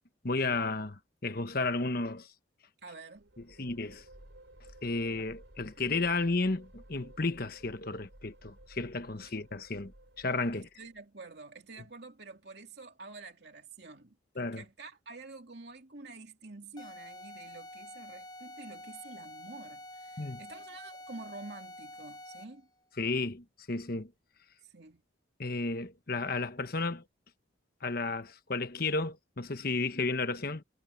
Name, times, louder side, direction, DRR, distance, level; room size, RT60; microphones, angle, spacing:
voice 1, 0.2-2.3 3.6-4.0 4.8-10.7 14.3-14.6 20.2-20.4 23.0-24.1 25.4-27.0 27.8-30.6, left 3 dB, 50° left, 1.2 m, -33 dB
voice 2, 2.8-3.2 9.3-9.4 10.5-22.7 24.6-25.0, right 3 dB, 55° right, 2.8 m, -48 dB
sound 1, 3.1-11.0, right 1 dB, 70° right, 4.3 m, -55 dB
sound 2, 16.8-22.7, left 1 dB, 20° left, 0.8 m, -48 dB
head